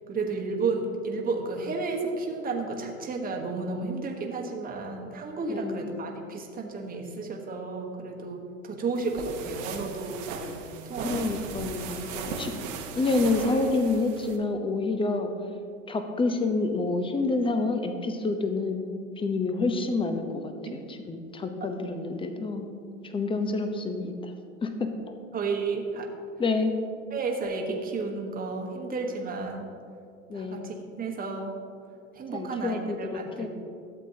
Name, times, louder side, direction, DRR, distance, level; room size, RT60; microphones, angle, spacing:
voice 1, 0.1-11.3 12.5-12.6 20.7-20.8 25.3-26.1 27.1-29.7 30.3-31.5 32.1-33.5, right 3 dB, 20° right, 1 dB, 1.3 m, -32 dB
voice 2, 5.5-5.9 11.0-12.5 12.9-15.3 15.9-18.8 19.2-22.7 23.0-24.3 24.6-24.9 26.4-26.8 30.3-30.7 32.3-33.5, left 3 dB, 15° left, 6 dB, 0.7 m, -28 dB
sound 1, 8.9-14.4, right 5 dB, 50° right, 1.2 m, -37 dB
12.5 x 7.6 x 2.8 m, 2.3 s
hypercardioid pair, 95°, 40 cm